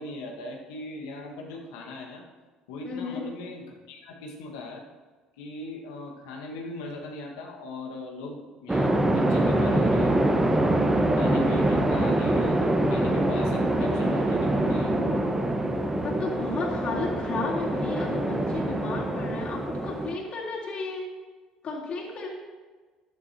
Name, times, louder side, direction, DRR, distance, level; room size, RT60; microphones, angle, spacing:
voice 1, 0.0-2.2 2.7-4.9 5.4-10.2 11.0-15.0, left 2 dB, 75° left, 0 dB, 1.7 m, -39 dB
voice 2, 2.8-3.3 15.7-21.1 21.6-22.3, left 3 dB, 50° left, -4 dB, 3.7 m, -33 dB
sound 1, 8.7-20.1, right 1 dB, 15° right, 1.3 m, -24 dB
14.0 x 11.0 x 2.9 m, 1.4 s
hypercardioid pair, 65°, 2 cm